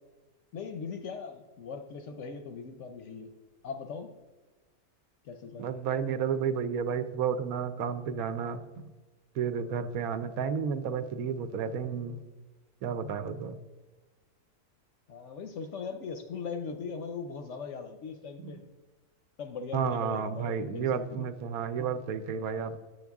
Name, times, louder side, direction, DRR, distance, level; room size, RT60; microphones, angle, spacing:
voice 1, 0.5-3.3 3.6-4.1 5.2-5.7 15.1-18.6 19.4-21.2, left 5 dB, 65° left, 7 dB, 0.8 m, -39 dB
voice 2, 5.6-8.6 9.3-12.2 12.8-13.6 18.4-18.5 19.7-22.8, right 7 dB, 75° right, 11 dB, 1.0 m, -31 dB
9.0 x 7.9 x 3.5 m, 1.2 s
omnidirectional pair, 1.6 m